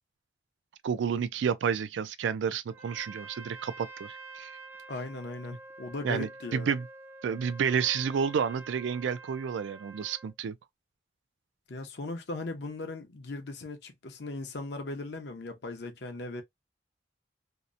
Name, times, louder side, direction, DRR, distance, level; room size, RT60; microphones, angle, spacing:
voice 1, 0.8-4.5 6.0-6.8 7.2-10.5, right 7 dB, 90° right, 0.3 m, -30 dB
Trumpet, 2.7-10.3, right 3 dB, 15° right, 0.4 m, -48 dB
voice 2, 4.9-6.8 11.7-16.4, left 2 dB, 70° left, 0.6 m, -38 dB
2.8 x 2.0 x 2.4 m
head